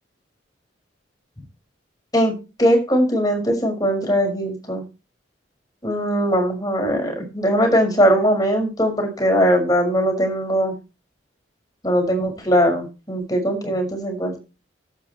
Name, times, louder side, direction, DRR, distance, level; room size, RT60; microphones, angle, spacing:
voice 1, 2.6-4.8 5.8-10.7 11.8-14.4, equal, 20° left, 3 dB, 6.1 m, -20 dB
12.0 x 9.3 x 4.6 m, 0.30 s
head